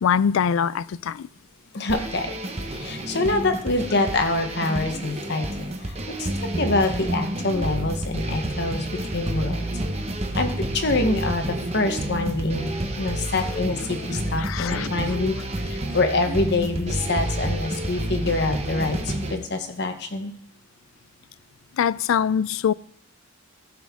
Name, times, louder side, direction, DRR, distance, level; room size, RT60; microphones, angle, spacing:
voice 1, 0.0-1.3 14.4-14.9 21.8-22.7, left 7 dB, 70° left, 0.3 m, -23 dB
voice 2, 1.7-2.3 2.7-9.6 10.3-12.7 13.0-20.3, left 2 dB, 50° left, 1.0 m, -26 dB
sound 1, 1.9-19.4, right 1 dB, 30° right, 0.9 m, -29 dB
15.0 x 6.2 x 3.6 m
head